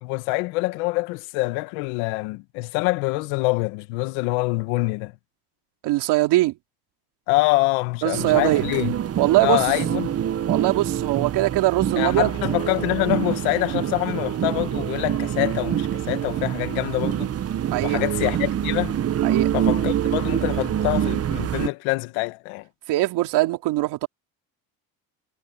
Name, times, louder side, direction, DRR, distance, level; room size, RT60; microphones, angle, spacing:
voice 1, 0.0-5.1 7.3-8.9 9.4-10.1 12.0-17.3 17.8-19.0 19.5-22.7, left 22 dB, 90° left, 1.5 m, -25 dB
voice 2, 5.8-6.5 8.0-8.6 9.2-9.7 10.5-12.3 17.7-18.0 19.2-19.5 22.9-24.1, right 17 dB, 75° right, 3.5 m, -21 dB
sound 1, 8.1-21.7, right 10 dB, 35° right, 0.9 m, -25 dB
supercardioid pair, 95°, 41 cm